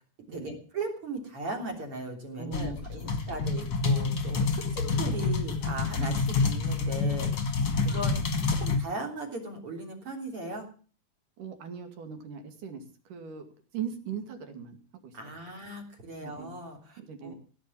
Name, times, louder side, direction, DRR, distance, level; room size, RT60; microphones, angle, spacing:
voice 1, 0.3-7.3 7.9-8.2 8.6-10.7 15.1-17.3, right 2 dB, 35° right, 3 dB, 3.9 m, -38 dB
voice 2, 2.4-3.5 4.8-5.1 7.8-8.1 11.4-12.8 13.1-13.5 13.7-14.8 15.0-15.3 16.2-16.5 17.0-17.3, right 7 dB, 60° right, 7 dB, 3.6 m, -40 dB
sound 1, 2.5-8.8, left 4 dB, 40° left, 2.0 m, -28 dB
17.0 x 9.4 x 7.2 m, 0.41 s
omnidirectional pair, 4.4 m